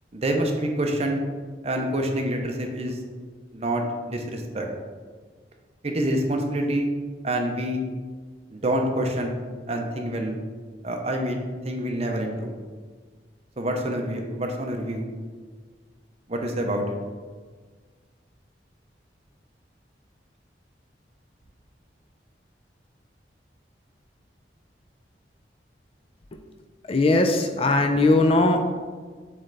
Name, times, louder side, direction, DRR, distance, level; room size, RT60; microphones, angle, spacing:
voice 1, 0.1-1.2 1.6-3.0 3.5-4.7 5.8-6.9 7.2-7.8 8.5-9.4 9.7-10.4 10.8-12.5 13.6-15.1 16.3-16.9, right 1 dB, 35° right, 3 dB, 0.7 m, -27 dB
voice 2, 26.9-28.7, left 2 dB, 30° left, 5 dB, 0.4 m, -19 dB
7.7 x 3.3 x 3.9 m, 1.5 s
head